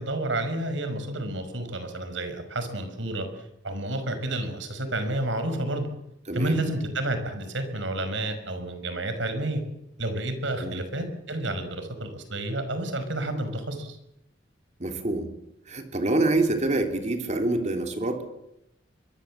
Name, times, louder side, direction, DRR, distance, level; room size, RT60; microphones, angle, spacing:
voice 1, 0.0-5.9 6.3-9.6 10.0-14.0, right 1 dB, 75° right, 9 dB, 5.7 m, -30 dB
voice 2, 6.3-6.6 10.6-10.8 14.8-15.3 15.7-18.3, right 2 dB, 40° right, 5 dB, 3.4 m, -26 dB
24.0 x 23.0 x 7.7 m, 0.84 s
head